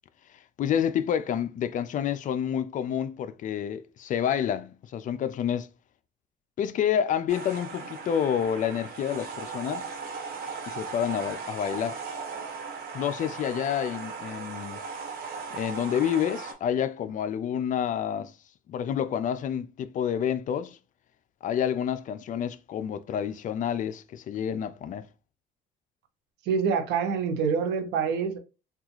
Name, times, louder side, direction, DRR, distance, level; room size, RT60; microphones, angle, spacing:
voice 1, 0.6-5.7 6.6-9.9 10.7-12.0 12.9-14.8 15.5-18.3 18.7-20.8 21.4-25.1, left 9 dB, 50° left, 0.4 m, -29 dB
sound 1, 7.3-16.5, right 5 dB, 65° right, 1.2 m, -38 dB
voice 2, 26.5-28.4, right 6 dB, 80° right, 0.8 m, -26 dB
3.5 x 2.4 x 2.9 m
cardioid pair, 110°, 17 cm